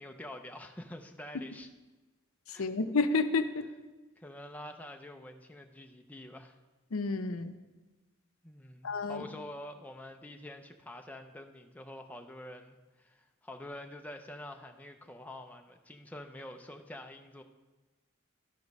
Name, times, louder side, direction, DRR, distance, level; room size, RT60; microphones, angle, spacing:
voice 1, 0.0-1.7 2.5-2.7 4.2-6.6 8.4-17.4, left 1 dB, 5° left, 4 dB, 0.4 m, -47 dB
voice 2, 2.5-3.6 6.9-7.5 8.8-9.2, left 3 dB, 80° left, 9 dB, 0.6 m, -30 dB
12.0 x 5.0 x 5.3 m, 1.2 s
head